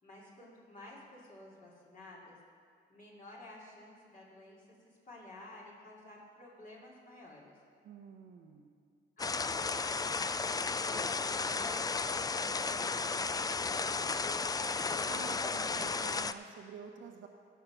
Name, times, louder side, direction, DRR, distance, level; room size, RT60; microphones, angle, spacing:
voice 1, 0.0-2.4 2.9-7.6 9.2-14.5, left 2 dB, 40° left, -5 dB, 2.7 m, -53 dB
voice 2, 7.8-8.7 15.0-17.3, right 6 dB, 75° right, 3 dB, 0.9 m, -48 dB
sound 1, 9.2-16.3, left 4 dB, 20° left, 0.4 m, -34 dB
16.5 x 5.7 x 6.0 m, 2.1 s
cardioid pair, 90°, 20 cm